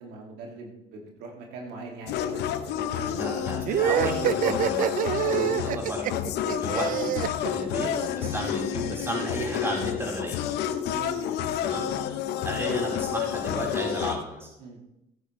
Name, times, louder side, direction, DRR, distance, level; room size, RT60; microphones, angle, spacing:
voice 1, 0.0-3.8 4.1-4.2 5.4-5.6 10.8-11.3 14.6-14.8, right 3 dB, 90° right, 1 dB, 2.3 m, -42 dB
sound 1, 2.1-14.2, left 10 dB, 80° left, 0.8 m, -30 dB
voice 2, 2.9-4.9 5.2-7.2 7.5-10.4 11.6-11.9 12.4-14.5, right 1 dB, 15° right, -2 dB, 4.2 m, -33 dB
sound 2, 3.6-8.3, right 12 dB, 55° right, 0.4 m, -26 dB
14.0 x 9.7 x 3.2 m, 0.84 s
cardioid pair, 110°, 17 cm